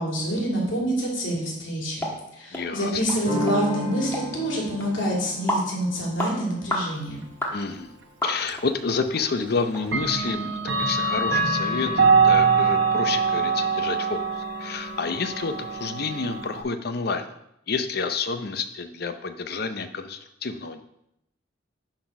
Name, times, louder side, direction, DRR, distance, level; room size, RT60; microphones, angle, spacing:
voice 1, 0.0-2.1 2.4-7.2, equal, 80° left, -2 dB, 2.7 m, -27 dB
sound 1, 2.0-2.2 2.5-2.7 3.1-3.2 3.5-3.6 4.1-4.3 4.8-4.9 5.5-5.7 6.2-6.3 6.7-6.9 7.4-7.6 8.2-8.7 9.1-9.2 9.7-9.8 10.3-10.4, left 1 dB, 10° left, 1.3 m, -28 dB
voice 2, 2.5-3.0 7.5-8.0 8.2-17.3 17.7-20.8, left 4 dB, 55° left, 9 dB, 0.6 m, -29 dB
sound 2, 3.2-8.8, left 1 dB, 35° left, 2.0 m, -35 dB
Clock, 8.5-8.6 9.8-16.6, right 5 dB, 65° right, 1.2 m, -23 dB
10.0 x 4.1 x 5.2 m, 0.79 s
head